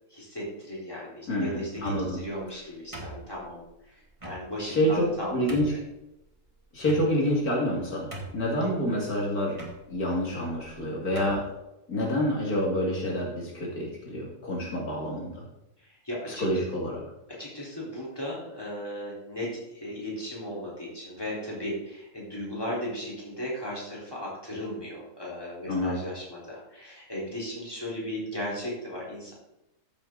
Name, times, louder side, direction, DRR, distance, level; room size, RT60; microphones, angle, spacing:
voice 1, 0.1-3.6 4.2-5.8 8.6-8.7 16.0-16.6 17.3-29.3, equal, 15° left, -6 dB, 4.0 m, -36 dB
voice 2, 1.3-2.2 4.6-5.7 6.7-9.6 9.9-11.4 11.9-15.4 16.3-17.0 25.7-26.0, equal, 75° left, -2 dB, 2.8 m, -28 dB
sound 1, 1.7-2.2 2.9-3.6 4.2-4.4 5.0-5.1 5.5-5.8 6.8-7.4 7.7-7.8 8.1-8.6 9.5-9.8 10.6-10.7 11.1-11.5, right 2 dB, 20° right, 2.0 m, -40 dB
14.0 x 7.1 x 3.9 m, 0.89 s
omnidirectional pair, 1.6 m